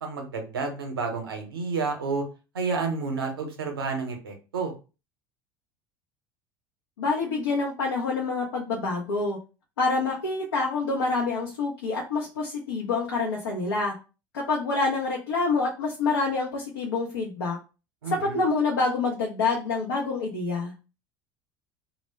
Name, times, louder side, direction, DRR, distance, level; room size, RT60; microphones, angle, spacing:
voice 1, 0.0-2.2 2.5-4.7 18.0-18.4, right 4 dB, 80° right, 3 dB, 0.6 m, -30 dB
voice 2, 7.0-9.4 9.8-13.9 14.3-17.6 18.1-20.7, left 3 dB, 80° left, -2 dB, 0.5 m, -27 dB
2.1 x 2.0 x 3.2 m, 0.32 s
hypercardioid pair, 70°, 12 cm